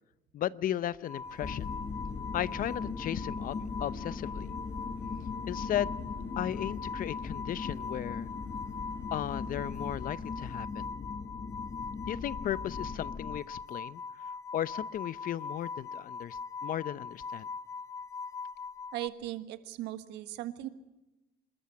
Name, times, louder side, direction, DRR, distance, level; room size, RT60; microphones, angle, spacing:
voice 1, 0.3-1.7 2.3-4.5 5.5-6.0 6.4-8.3 9.1-10.9 12.1-14.0 14.5-17.5, left 11 dB, 55° left, 18 dB, 0.7 m, -35 dB
sound 1, 1.0-19.1, left 5 dB, 20° left, 1.1 m, -41 dB
sound 2, 1.2-10.6, right 2 dB, 10° right, 1.9 m, -53 dB
sound 3, 1.4-13.4, left 5 dB, 35° left, 1.6 m, -39 dB
voice 2, 18.9-20.7, right 14 dB, 90° right, 11 dB, 1.5 m, -38 dB
26.5 x 13.5 x 8.5 m, 1.0 s
cardioid pair, 110°, 17 cm